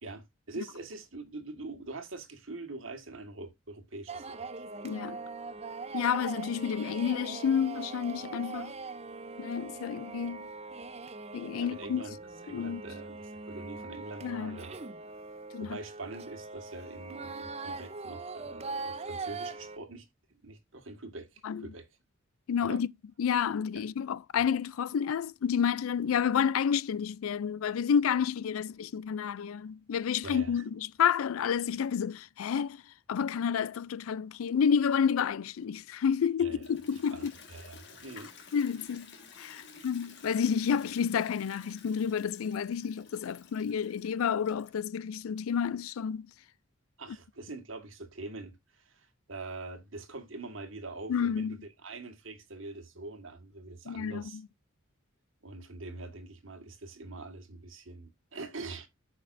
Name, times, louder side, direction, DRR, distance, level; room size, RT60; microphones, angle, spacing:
voice 1, 0.0-4.4 11.5-12.2 12.4-14.8 15.6-20.1 20.4-21.9 22.6-22.8 23.7-23.9 30.2-30.6 36.4-36.6 37.1-38.3 47.0-54.4 55.4-58.9, right 3 dB, 70° right, 1.7 m, -44 dB
sound 1, 4.1-19.8, right 4 dB, 30° right, 0.6 m, -41 dB
voice 2, 4.8-5.2 5.9-8.7 9.4-10.5 11.3-12.0 12.5-12.8 14.2-14.6 15.5-15.8 21.4-21.7 22.5-22.9 23.2-32.8 33.1-37.3 38.5-39.1 39.4-46.3 51.1-51.6 53.9-54.4, left 7 dB, 85° left, 0.4 m, -30 dB
Toilet flush, 36.4-45.0, left 4 dB, 55° left, 1.7 m, -53 dB
13.5 x 5.3 x 2.6 m
head